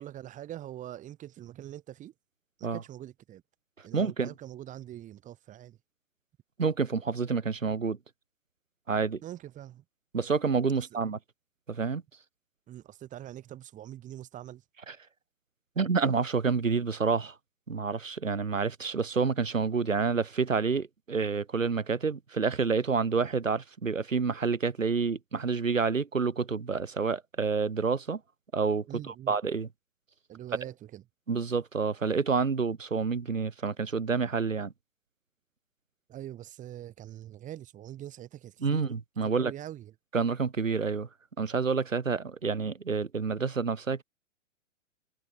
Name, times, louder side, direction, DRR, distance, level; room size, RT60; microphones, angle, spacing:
voice 1, 0.0-2.1 2.6-3.4 3.8-5.8 9.2-9.8 10.7-10.9 12.7-14.6 28.9-29.4 30.3-31.0 36.1-38.9 39.3-39.9, right 12 dB, 20° right, 2.7 m, -43 dB
voice 2, 3.9-4.3 6.6-8.0 8.9-9.2 10.1-11.2 11.7-12.0 14.9-15.0 15.8-17.3 17.7-28.2 28.5-29.7 31.3-34.7 38.6-39.5 40.1-41.1 41.4-44.0, right 5 dB, 85° right, 1.1 m, -28 dB
figure-of-eight pair, 115°, 38 cm